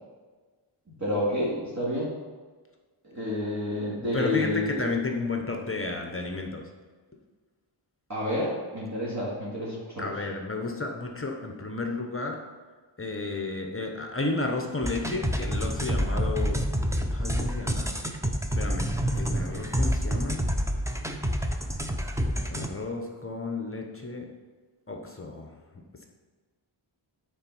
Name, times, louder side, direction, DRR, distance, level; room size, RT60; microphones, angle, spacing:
voice 1, 1.0-2.1 3.0-4.9 8.1-10.1, left 1 dB, 35° right, -8 dB, 2.2 m, -29 dB
voice 2, 4.1-6.6 10.0-12.4 13.0-16.6 17.1-17.9 18.6-20.4 22.5-24.3 24.9-25.5, left 3 dB, 25° left, 2 dB, 0.9 m, -32 dB
sound 1, 14.8-22.7, equal, 5° right, 0.6 m, -28 dB
8.8 x 4.3 x 5.6 m, 1.4 s
wide cardioid pair, 95°, 50 cm